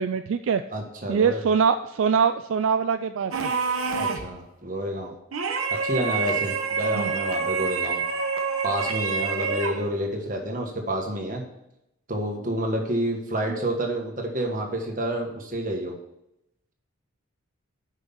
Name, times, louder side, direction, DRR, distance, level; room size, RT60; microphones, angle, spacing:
voice 1, 0.0-0.6 1.1-3.5 6.9-7.1, right 6 dB, 70° right, 9 dB, 0.3 m, -23 dB
voice 2, 0.7-1.4 3.9-5.1 5.8-8.0 8.6-11.4 12.1-16.0, right 1 dB, 40° right, 1 dB, 1.5 m, -29 dB
sound 1, 3.3-4.4 5.3-9.9, right 5 dB, 90° right, 1.0 m, -27 dB
6.2 x 5.3 x 7.0 m, 0.84 s
head